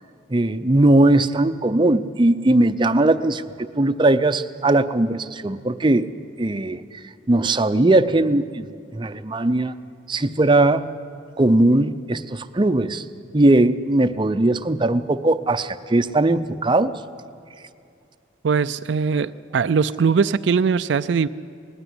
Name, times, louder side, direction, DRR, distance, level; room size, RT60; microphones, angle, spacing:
voice 1, 0.3-6.1 6.4-6.8 7.3-8.6 8.9-9.7 10.1-10.9 11.4-13.0 13.3-16.9, right 2 dB, 25° right, 10 dB, 0.6 m, -19 dB
voice 2, 18.4-21.3, right 5 dB, 70° right, 12 dB, 0.4 m, -20 dB
19.5 x 15.5 x 9.9 m, 2.5 s
head